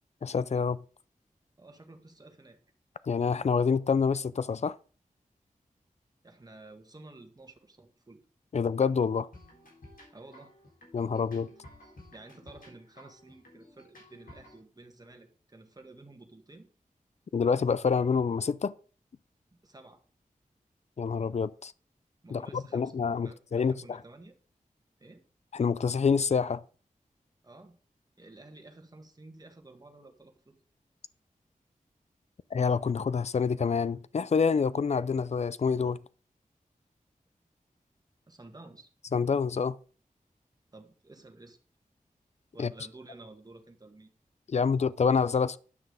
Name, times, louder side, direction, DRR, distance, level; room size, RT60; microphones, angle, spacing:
voice 1, 0.2-0.8 3.0-4.8 8.5-9.3 10.9-11.5 17.3-18.7 21.0-21.7 22.3-24.0 25.5-26.6 32.5-36.0 39.1-39.8 42.6-42.7 44.5-45.6, left 5 dB, 50° left, 0.5 m, -27 dB
voice 2, 1.6-2.6 6.2-8.2 10.1-10.5 11.6-11.7 12.1-16.7 19.5-20.0 22.2-24.3 25.0-25.2 27.4-27.8 28.2-30.6 38.3-38.9 40.7-41.6 42.5-44.1, right 2 dB, 25° right, 1.7 m, -52 dB
sound 1, 9.3-14.6, left 1 dB, 80° left, 3.8 m, -54 dB
9.8 x 6.1 x 5.1 m
wide cardioid pair, 95°, 14 cm